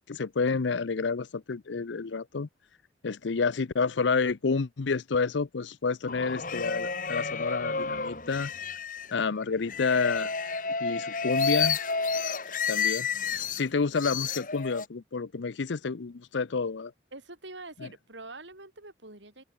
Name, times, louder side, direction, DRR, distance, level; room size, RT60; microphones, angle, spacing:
voice 1, 0.1-2.5 3.0-8.5 9.1-10.3 10.8-11.8 12.7-13.1 13.6-16.9 17.8-17.9, left 4 dB, 80° left, 0.6 m, -29 dB
sound 1, 6.1-9.1 9.7-13.6 14.0-14.9, left 5 dB, 45° left, 2.1 m, -30 dB
voice 2, 17.1-19.4, right 2 dB, 80° right, 7.0 m, -45 dB
open air
head